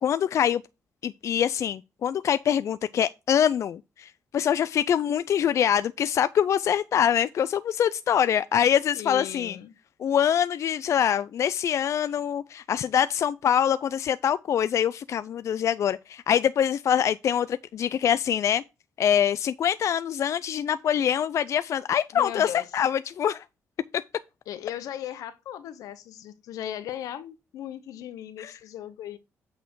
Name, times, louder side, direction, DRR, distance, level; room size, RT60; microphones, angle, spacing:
voice 1, 0.0-0.6 1.0-9.6 10.0-18.6 19.0-23.4 28.4-28.5, left 9 dB, 60° left, 0.4 m, -24 dB
voice 2, 8.9-9.7 22.1-22.7 24.5-29.2, left 11 dB, 85° left, 0.8 m, -37 dB
8.1 x 4.3 x 4.6 m
cardioid pair, 85°, 6 cm